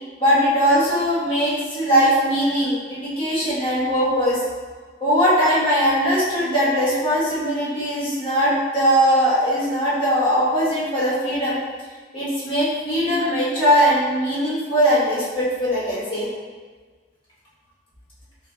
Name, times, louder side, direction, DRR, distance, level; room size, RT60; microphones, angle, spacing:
voice 1, 0.2-4.4 5.0-11.6 12.1-16.3, equal, 30° left, -9 dB, 1.2 m, -20 dB
4.4 x 3.2 x 2.3 m, 1.4 s
head